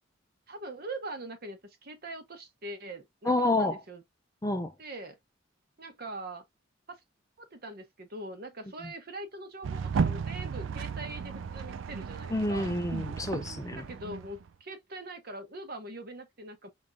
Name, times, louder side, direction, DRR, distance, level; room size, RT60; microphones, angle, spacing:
voice 1, 0.5-4.0 4.8-5.2 5.8-6.4 6.9-7.0 7.4-12.7 13.7-16.7, right 2 dB, 50° right, 1.0 m, -42 dB
voice 2, 3.2-3.8 4.4-4.7 8.8-8.9 12.3-13.9, left 2 dB, 15° left, 0.5 m, -29 dB
sound 1, 9.6-14.5, right 6 dB, 75° right, 0.4 m, -34 dB
4.8 x 3.5 x 2.5 m
head